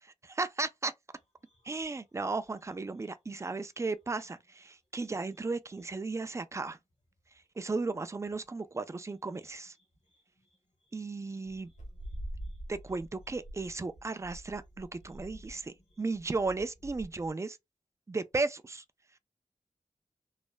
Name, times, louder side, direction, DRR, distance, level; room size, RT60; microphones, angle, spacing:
voice 1, 0.2-0.9 1.7-6.8 7.6-9.7 10.9-11.7 12.7-17.6 18.1-18.8, right 3 dB, 20° right, 0.3 m, -35 dB
sound 1, 1.2-4.7 4.9-8.7 8.9-17.3, equal, 65° left, 1.3 m, -49 dB
3.2 x 2.1 x 2.2 m
wide cardioid pair, 80°, 13 cm